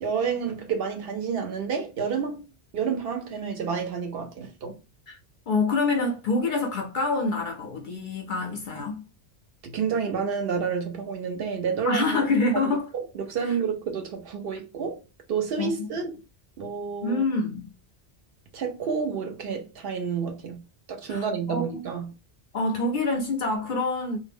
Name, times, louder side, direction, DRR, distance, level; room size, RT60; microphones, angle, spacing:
voice 1, 0.0-4.8 9.6-12.1 12.5-12.6 12.9-15.0 15.3-16.2 16.6-17.3 18.5-20.6 20.9-22.1, right 6 dB, 65° right, 0.7 m, -29 dB
voice 2, 5.5-9.0 11.8-12.9 13.4-13.6 15.6-15.9 17.0-17.7 21.1-21.9 22.5-24.2, left 3 dB, 55° left, 0.6 m, -26 dB
2.1 x 2.1 x 3.4 m
omnidirectional pair, 1.1 m